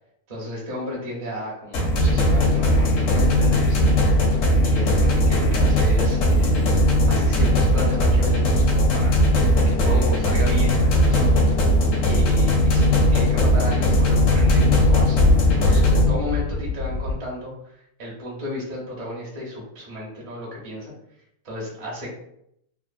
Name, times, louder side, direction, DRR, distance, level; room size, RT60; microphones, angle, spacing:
voice 1, 0.3-6.5 7.1-9.2 9.7-11.4 12.0-20.9 21.4-22.1, equal, 40° right, -4 dB, 0.5 m, -33 dB
sound 1, 1.7-16.1, equal, 70° left, 0.7 m, -18 dB
sound 2, 11.7-12.0 12.4-17.1, left 3 dB, 60° right, 0.9 m, -25 dB
2.9 x 2.0 x 2.4 m, 0.75 s
omnidirectional pair, 1.9 m